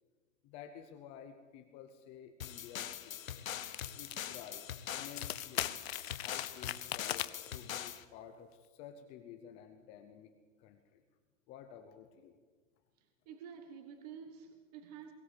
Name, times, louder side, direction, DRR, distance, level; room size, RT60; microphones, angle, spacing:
voice 1, 0.4-3.4 4.0-4.6 4.9-5.6 6.0-10.3 10.6-11.0 11.5-12.4, left 9 dB, 15° left, 6 dB, 0.7 m, -52 dB
sound 1, 2.4-8.0, left 10 dB, 85° left, 1.5 m, -43 dB
sound 2, 3.7-4.2 4.5-4.6 5.1-7.5, left 13 dB, 50° left, 0.8 m, -39 dB
voice 2, 13.0-15.1, right 7 dB, 30° right, 7 dB, 1.4 m, -50 dB
22.5 x 16.0 x 8.3 m, 1.4 s
hypercardioid pair, 170°, 39 cm